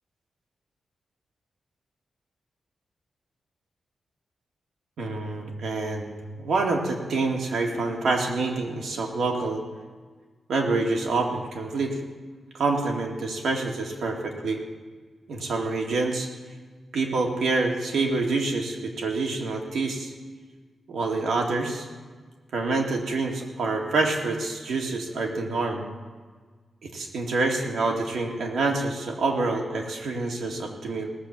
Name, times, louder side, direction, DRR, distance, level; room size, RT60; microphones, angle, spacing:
voice 1, 5.0-9.6 10.5-12.0 12.5-14.6 15.3-16.3 16.9-20.1 20.9-21.9 22.5-25.9 26.8-31.1, right 3 dB, 85° right, 1 dB, 2.2 m, -27 dB
18.0 x 7.3 x 7.3 m, 1.4 s
wide cardioid pair, 160°, 0 cm